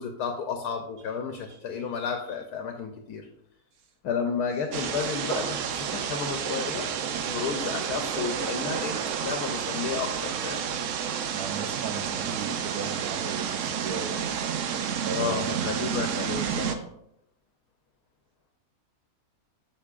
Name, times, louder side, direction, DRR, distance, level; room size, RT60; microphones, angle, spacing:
voice 1, 0.0-3.3 4.0-6.9 7.2-10.7 15.1-16.9, left 6 dB, 85° left, 4 dB, 1.2 m, -32 dB
sound 1, 4.7-16.8, right 8 dB, 65° right, 0.9 m, -30 dB
voice 2, 11.3-14.2 14.7-15.7, right 6 dB, 80° right, 7 dB, 1.3 m, -37 dB
8.3 x 6.0 x 2.4 m, 0.75 s
omnidirectional pair, 1.6 m